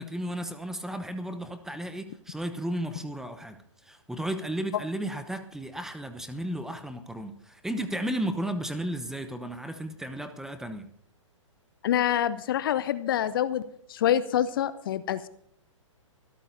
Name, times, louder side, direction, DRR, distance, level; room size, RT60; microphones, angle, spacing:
voice 1, 0.0-3.6 3.8-10.9, right 1 dB, 5° right, 10 dB, 0.9 m, -34 dB
voice 2, 11.8-13.6 13.9-15.3, left 10 dB, 45° left, 15 dB, 0.7 m, -26 dB
24.5 x 13.5 x 2.7 m, 0.67 s
figure-of-eight pair, 120°, 16 cm